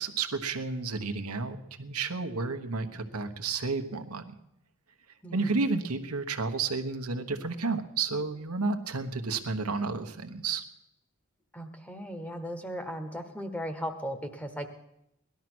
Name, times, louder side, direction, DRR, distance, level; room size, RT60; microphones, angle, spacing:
voice 1, 0.0-4.3 5.3-10.6, right 4 dB, 90° right, 8 dB, 1.2 m, -31 dB
voice 2, 11.5-14.7, equal, 5° left, 7 dB, 1.1 m, -37 dB
17.5 x 12.0 x 6.2 m, 0.82 s
head